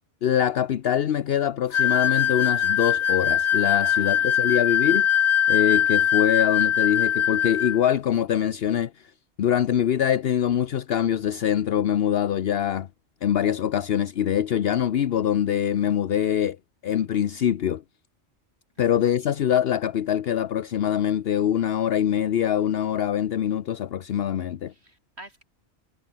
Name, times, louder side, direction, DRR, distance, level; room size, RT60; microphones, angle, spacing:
voice 1, 0.2-5.1 5.5-9.1 9.4-12.9 13.2-16.6 16.8-17.8 18.8-24.7, left 10 dB, 65° left, 0.9 m, -24 dB
sound 1, 1.7-7.8, left 10 dB, 80° left, 1.1 m, -22 dB
voice 2, 3.8-4.6 18.8-18.9 24.7-25.4, right 1 dB, 70° right, 8.0 m, -48 dB
omnidirectional pair, 1.1 m